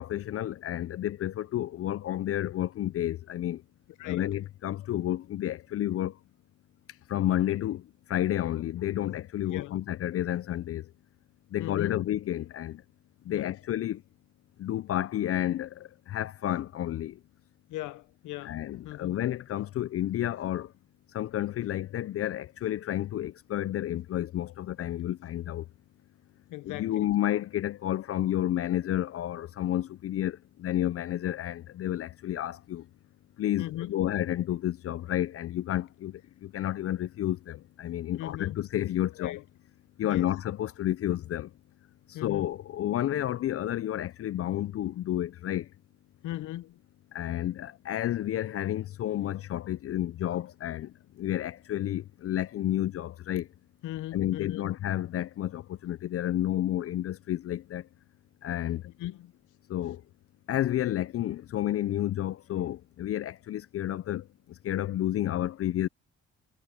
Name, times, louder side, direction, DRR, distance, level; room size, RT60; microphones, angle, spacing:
voice 1, 0.0-3.6 4.0-6.2 7.1-10.9 11.5-12.8 13.2-14.0 14.6-17.2 18.4-20.7 21.1-25.7 26.6-32.9 33.4-39.4 40.0-41.5 42.1-45.7 47.1-53.5 54.1-57.9 58.4-58.9 59.7-60.0 60.5-65.9, left 12 dB, 50° left, 0.4 m, -31 dB
voice 2, 4.0-4.3 9.5-9.8 11.6-12.0 13.3-13.5 17.7-18.6 18.8-19.2 26.5-27.1 33.6-33.9 38.1-38.6 39.2-39.4 40.0-40.3 42.1-42.5 46.2-46.8 53.8-54.7 59.0-59.3, left 15 dB, 85° left, 0.8 m, -38 dB
cardioid pair, 90°, 30 cm